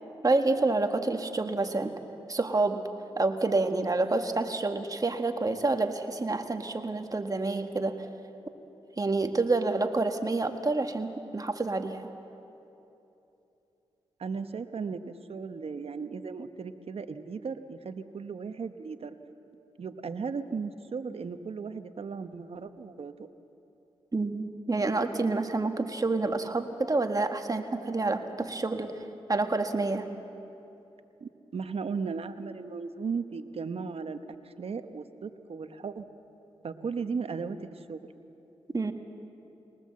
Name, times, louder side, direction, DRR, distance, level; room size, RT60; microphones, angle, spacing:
voice 1, 0.2-1.9 2.3-2.8 3.2-8.1 9.0-12.1 24.1-28.9 29.3-30.1 38.7-38.9, right 3 dB, 35° right, 6 dB, 1.6 m, -28 dB
voice 2, 14.2-19.2 19.8-23.3 31.2-36.0 36.6-38.0, right 5 dB, 60° right, 9 dB, 1.1 m, -36 dB
22.0 x 19.0 x 7.6 m, 2.9 s
cardioid pair, 55°, 11 cm